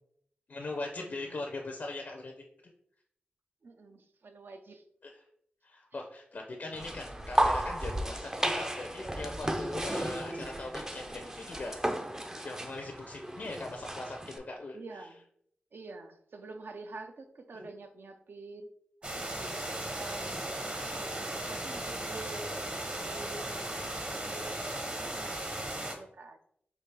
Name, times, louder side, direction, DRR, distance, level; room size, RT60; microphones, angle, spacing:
voice 1, 0.5-2.3 5.0-5.1 5.6-11.8 12.4-15.1 17.5-17.7, left 2 dB, 55° left, 2 dB, 0.5 m, -40 dB
voice 2, 1.1-1.4 3.6-4.8 14.7-15.2 15.7-18.7 19.0-23.5 24.0-24.4 24.7-26.4, right 3 dB, 65° right, 7 dB, 0.5 m, -48 dB
sound 1, 6.7-14.4, right 1 dB, 15° right, 0.4 m, -34 dB
sound 2, 19.0-25.9, right 1 dB, 30° right, 0.8 m, -36 dB
4.6 x 2.4 x 3.3 m, 0.70 s
cardioid pair, 65°, 4 cm